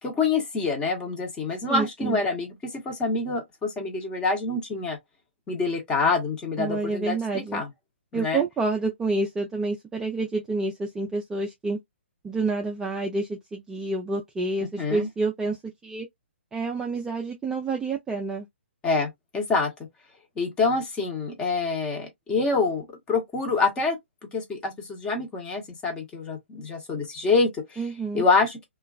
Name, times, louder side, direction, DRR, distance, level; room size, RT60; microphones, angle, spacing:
voice 1, 0.0-5.0 5.5-7.7 8.1-8.4 14.8-15.1 18.8-19.7 20.4-24.0 24.2-27.8 28.1-28.6, left 4 dB, 15° left, 0.9 m, -26 dB
voice 2, 1.7-2.2 6.6-7.6 8.1-11.8 12.2-15.6 15.8-16.1 16.5-18.5 27.8-28.3, right 3 dB, 5° right, 0.3 m, -28 dB
2.9 x 2.3 x 2.3 m
figure-of-eight pair, 130°, 6 cm